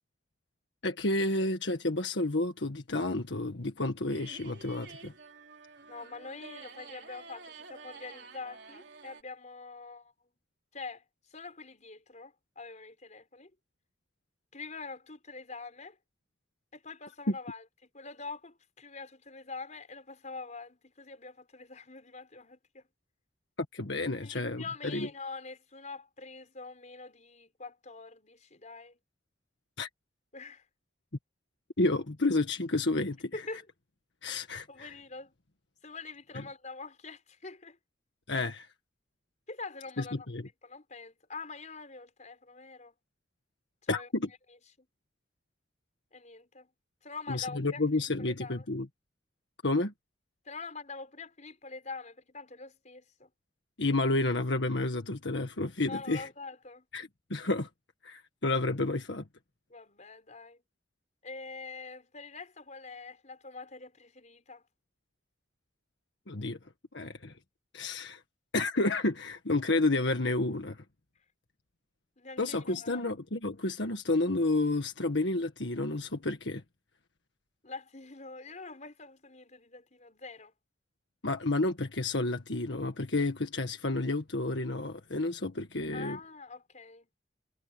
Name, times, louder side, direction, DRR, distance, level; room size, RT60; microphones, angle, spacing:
voice 1, 0.8-5.1 23.7-25.1 29.8-29.9 31.8-33.3 34.2-34.9 38.3-38.7 40.0-40.4 43.9-44.3 47.3-48.9 49.6-49.9 53.8-56.3 56.9-57.7 58.0-59.2 66.3-66.6 66.9-67.3 67.7-68.2 68.5-70.8 72.4-76.6 81.2-86.2, left 2 dB, 75° left, 1.7 m, -30 dB
sound 1, 4.1-9.2, right 4 dB, 70° right, 3.9 m, -50 dB
voice 2, 5.9-10.1 10.7-11.0 11.3-13.5 14.5-16.0 16.7-17.6 17.9-22.9 24.2-29.0 30.3-30.7 33.3-33.7 34.7-35.3 35.8-37.8 39.5-40.3 40.6-42.9 43.8-44.1 44.8-44.9 46.1-46.7 47.0-48.7 50.5-53.3 55.9-56.9 59.7-60.6 61.2-64.6 67.0-67.2 72.2-73.1 77.6-80.5 85.9-87.1, left 4 dB, 40° left, 5.1 m, -45 dB
head